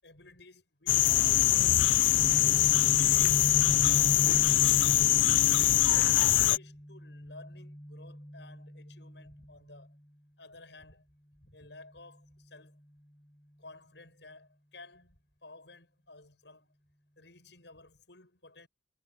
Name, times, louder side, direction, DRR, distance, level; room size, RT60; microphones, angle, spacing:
voice 1, 0.0-2.7 3.1-5.1 5.8-10.0 10.4-11.1 11.4-12.8 13.6-16.7 17.2-18.7, left 2 dB, 70° left, 7.7 m, -54 dB
sound 1, 0.9-6.6, left 14 dB, 90° left, 0.4 m, -23 dB
Guitar, 2.2-10.0, equal, 15° left, 5.7 m, -40 dB
head